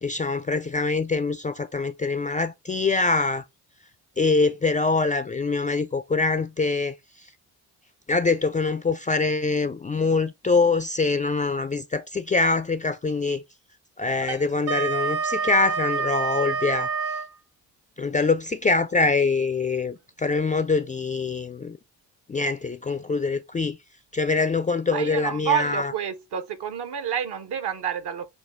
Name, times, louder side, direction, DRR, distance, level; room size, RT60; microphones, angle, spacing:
voice 1, 0.0-3.4 4.2-7.3 8.1-13.4 14.0-17.2 18.0-21.8 22.3-23.8 24.1-25.9, left 3 dB, 15° left, 0.4 m, -24 dB
Wind instrument woodwind instrument, 14.2-17.3, right 5 dB, 80° right, 0.9 m, -27 dB
voice 2, 24.9-28.3, right 8 dB, 55° right, 1.0 m, -28 dB
6.1 x 2.3 x 3.3 m
hypercardioid pair, 45°, 48 cm